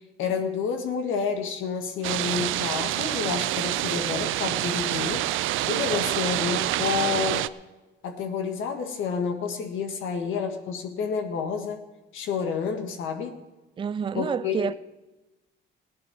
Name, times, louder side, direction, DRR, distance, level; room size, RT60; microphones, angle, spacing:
voice 1, 0.0-5.3 5.7-7.5 8.0-11.8 12.1-13.4 14.1-14.7, left 6 dB, 85° left, 1.6 m, -29 dB
sound 1, 2.0-7.5, right 15 dB, 85° right, 0.4 m, -27 dB
voice 2, 13.8-14.7, right 7 dB, 25° right, 0.4 m, -28 dB
17.0 x 11.0 x 4.6 m
cardioid pair, 90°, 20 cm